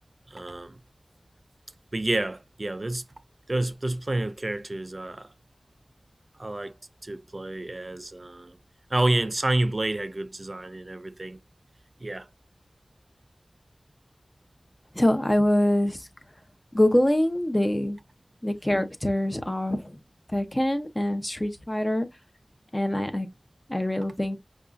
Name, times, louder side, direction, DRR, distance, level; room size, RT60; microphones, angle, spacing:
voice 1, 0.3-0.8 1.9-3.0 3.5-5.3 6.4-6.7 7.0-8.6 8.9-11.4 12.0-12.3, right 2 dB, 45° right, 0.4 m, -29 dB
voice 2, 14.9-16.1 16.7-18.0 18.4-20.0 20.3-22.1 22.7-23.3 23.7-24.4, left 1 dB, 20° left, 0.7 m, -24 dB
5.4 x 2.4 x 2.4 m
wide cardioid pair, 55°, 0 cm